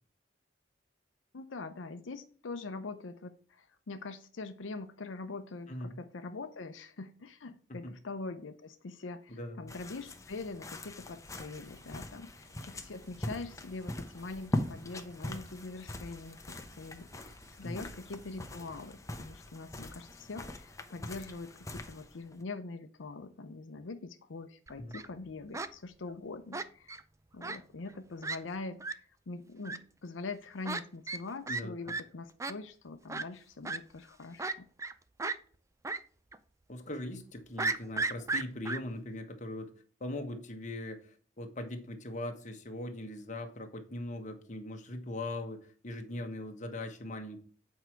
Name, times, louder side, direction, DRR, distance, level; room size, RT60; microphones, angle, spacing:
voice 1, 1.3-27.0 27.3-34.7, left 3 dB, 85° left, 8 dB, 0.6 m, -43 dB
voice 2, 5.7-6.0 7.7-7.9 9.3-9.7 17.6-17.9 24.8-24.9 31.5-31.9 36.7-39.7 40.0-47.4, left 1 dB, 40° left, 5 dB, 1.3 m, -40 dB
sound 1, 9.7-22.4, left 1 dB, 15° left, 0.9 m, -42 dB
sound 2, 11.5-12.1 12.4-18.9, right 1 dB, 75° right, 1.8 m, -61 dB
Fowl, 24.7-25.1 25.5-25.7 26.5-27.0 27.4-27.6 27.9-28.0 28.2-28.4 28.8-28.9 29.6-29.8 30.6-30.8 31.1-31.2 31.5-31.6 31.9-32.0 32.4-32.5 33.1-33.2 33.6-33.8 34.4-34.9 35.2-35.4 35.8-36.0 36.3-36.4 37.6-38.8, right 3 dB, 15° right, 0.4 m, -34 dB
8.2 x 4.7 x 4.5 m, 0.44 s
head